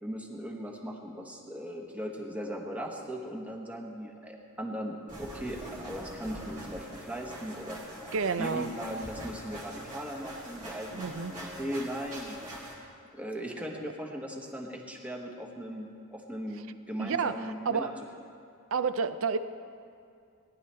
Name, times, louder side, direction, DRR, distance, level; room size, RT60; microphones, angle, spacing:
voice 1, 0.0-7.8 8.4-12.4 13.1-17.9, equal, 5° right, 0 dB, 1.1 m, -38 dB
sound 1, 5.1-12.7, right 1 dB, 35° right, 2.6 m, -43 dB
voice 2, 8.1-8.7 10.9-11.3 13.7-13.8 17.0-17.9 18.7-19.4, right 5 dB, 65° right, 12 dB, 0.5 m, -30 dB
18.0 x 11.0 x 3.4 m, 2.4 s
head